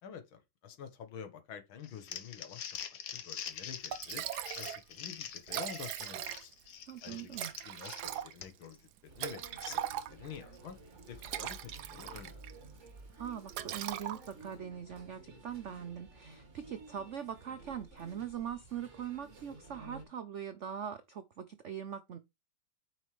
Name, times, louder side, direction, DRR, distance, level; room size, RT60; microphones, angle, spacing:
voice 1, 0.0-4.2 4.6-6.5 7.0-7.3 7.6-9.8 10.1-10.8 11.1-12.4, left 7 dB, 85° left, 2.1 m, -48 dB
Crumpling crinkling, 1.8-8.7, left 8 dB, 65° left, 1.6 m, -45 dB
Liquid, 3.5-3.6 3.9-4.8 5.1-5.2 5.4-6.7 7.3-10.4 11.0-12.6 12.9-13.1 13.5-14.5, right 11 dB, 65° right, 1.1 m, -40 dB
voice 2, 6.9-7.5 13.2-22.2, right 8 dB, 85° right, 0.6 m, -42 dB
sound 1, 9.1-20.0, right 3 dB, 35° right, 2.5 m, -53 dB
9.1 x 5.4 x 3.1 m
omnidirectional pair, 2.2 m